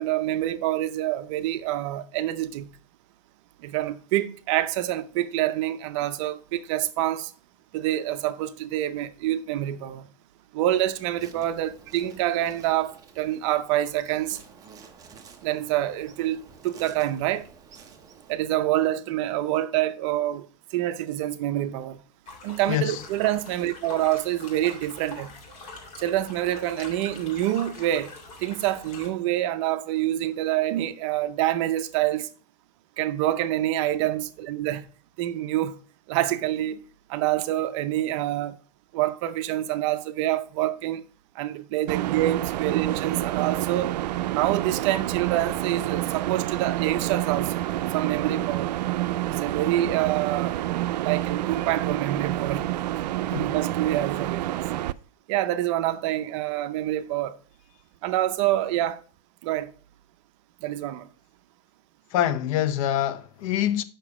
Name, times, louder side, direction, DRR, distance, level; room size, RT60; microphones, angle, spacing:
voice 1, 0.0-2.7 3.6-7.3 7.7-10.1 10.5-14.4 15.4-17.5 18.3-20.5 20.7-22.0 22.4-25.3 26.0-28.1 28.4-32.3 33.0-34.9 35.2-35.8 36.1-36.8 37.1-38.6 38.9-41.0 41.3-44.0 44.3-47.5 47.9-48.7 49.3-50.6 51.0-52.6 53.4-54.6 55.3-57.4 58.0-59.0 59.4-59.7 60.6-61.1, right 13 dB, 45° right, 0.6 m, -26 dB
Insect, 10.8-18.4, right 5 dB, 15° right, 0.8 m, -51 dB
sound 1, 22.2-29.1, left 3 dB, 30° left, 2.3 m, -44 dB
voice 2, 22.7-23.0 53.3-53.5 62.1-63.8, left 11 dB, 55° left, 0.8 m, -25 dB
sound 2, 41.9-54.9, right 14 dB, 90° right, 0.4 m, -28 dB
6.9 x 5.9 x 4.8 m
supercardioid pair, 150°, 21 cm